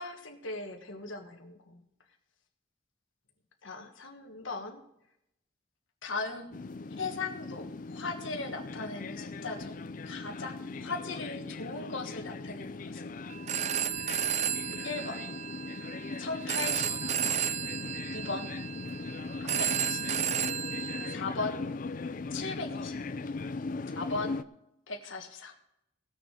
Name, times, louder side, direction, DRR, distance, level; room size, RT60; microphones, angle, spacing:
voice 1, 0.0-1.8 3.6-4.8 6.0-6.6 7.0-9.8 10.0-13.1 14.8-15.2 16.2-16.9 18.1-18.5 19.4-20.0 21.1-21.7 22.3-23.0 24.0-24.4 24.9-25.5, left 3 dB, 75° left, 3 dB, 1.5 m, -38 dB
sound 1, 6.5-24.4, left 3 dB, 40° left, 0.4 m, -39 dB
Telephone, 13.3-21.1, right 9 dB, 35° right, 0.3 m, -33 dB
18.0 x 7.1 x 4.9 m, 0.80 s
head